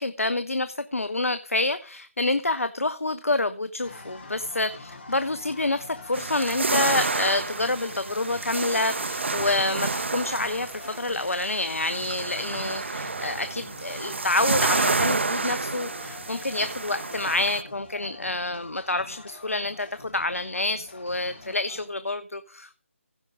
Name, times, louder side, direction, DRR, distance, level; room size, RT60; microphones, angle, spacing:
voice 1, 0.0-22.8, left 2 dB, 75° left, 12 dB, 0.7 m, -28 dB
sound 1, 3.8-21.8, left 3 dB, 50° left, 3.5 m, -45 dB
sound 2, 6.1-17.6, right 3 dB, 55° right, 0.6 m, -29 dB
15.5 x 5.3 x 5.0 m, 0.39 s
figure-of-eight pair, 155°, 8 cm